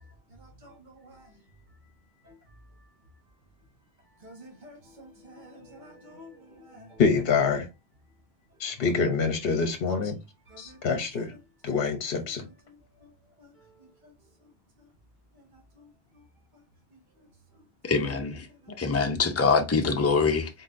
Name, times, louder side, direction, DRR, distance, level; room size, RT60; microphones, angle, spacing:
voice 1, 0.4-1.3 2.2-2.3 4.2-7.0 10.5-10.8 13.4-13.5 15.8-15.9, equal, 45° right, 1.6 m, -50 dB
voice 2, 7.0-7.7 8.6-10.2 10.6-11.3 11.6-12.5, left 5 dB, 65° left, 0.9 m, -26 dB
voice 3, 17.8-18.5 18.8-20.5, left 4 dB, 20° left, 0.5 m, -24 dB
4.1 x 4.0 x 2.5 m
omnidirectional pair, 1.1 m